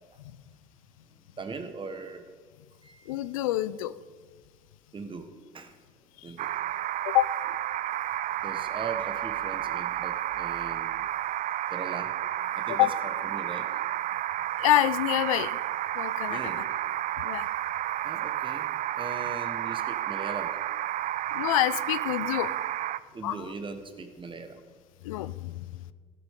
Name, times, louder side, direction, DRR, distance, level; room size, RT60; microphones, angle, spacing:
voice 1, 1.4-2.2 2.8-3.1 4.9-5.3 5.5-5.7 6.2-6.5 8.4-11.0 11.7-12.1 12.5-13.8 16.3-16.8 18.0-18.7 18.9-20.6 23.1-24.6, right 4 dB, 30° right, 8 dB, 1.4 m, -39 dB
voice 2, 3.1-3.9 7.0-7.3 12.7-12.9 14.6-15.6 16.0-16.4 17.2-17.5 21.3-22.5 23.2-23.4 25.0-25.6, left 15 dB, 85° left, 17 dB, 0.4 m, -26 dB
sound 1, 6.4-23.0, right 13 dB, 50° right, 0.4 m, -31 dB
13.5 x 12.5 x 3.8 m, 1.5 s
hypercardioid pair, 70°, 17 cm